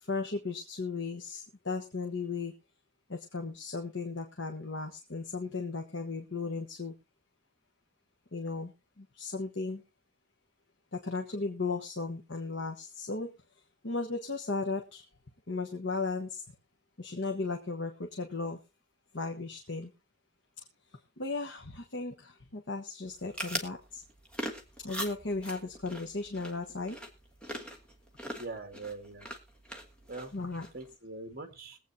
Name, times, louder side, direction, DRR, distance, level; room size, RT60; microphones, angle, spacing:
voice 1, 0.0-2.5 3.1-6.9 8.3-8.7 9.0-9.8 10.9-13.3 13.8-15.0 15.5-16.4 17.0-18.6 19.1-19.9 21.2-24.0 24.8-27.0 30.3-30.7, left 3 dB, 60° left, 4 dB, 1.2 m, -36 dB
sound 1, 23.1-30.9, equal, 5° left, 1.5 m, -42 dB
voice 2, 28.4-29.3 30.1-30.3 30.7-31.8, right 3 dB, 45° right, 6 dB, 1.9 m, -42 dB
21.5 x 8.3 x 2.8 m, 0.28 s
head